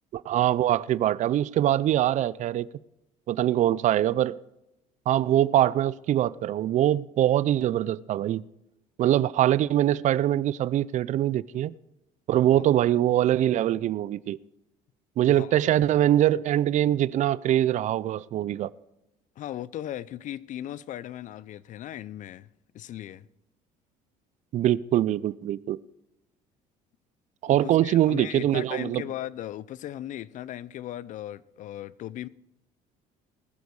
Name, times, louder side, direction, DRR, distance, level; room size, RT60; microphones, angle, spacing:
voice 1, 0.1-2.7 3.3-4.4 5.1-8.4 9.0-11.7 12.3-14.4 15.2-18.7 24.5-25.8 27.4-29.0, right 12 dB, 50° right, 0.4 m, -23 dB
voice 2, 15.3-15.6 19.4-22.5 22.7-23.3 27.5-32.3, left 12 dB, 55° left, 0.5 m, -37 dB
20.0 x 7.1 x 4.7 m
cardioid pair, 100°, 16 cm